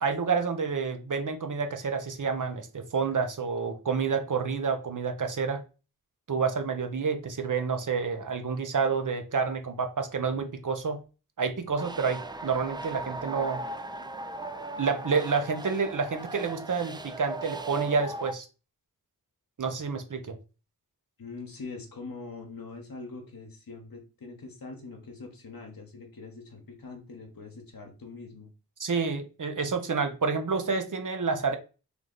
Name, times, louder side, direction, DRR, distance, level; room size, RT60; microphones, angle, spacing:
voice 1, 0.0-5.6 6.3-11.0 11.4-13.6 14.8-18.5 19.6-20.4 28.8-31.6, right 5 dB, 55° right, 0.8 m, -29 dB
sound 1, 11.8-18.3, right 2 dB, 10° right, 0.4 m, -38 dB
voice 2, 21.2-28.5, left 3 dB, 65° left, 1.1 m, -43 dB
3.4 x 3.2 x 3.8 m
wide cardioid pair, 60°, 37 cm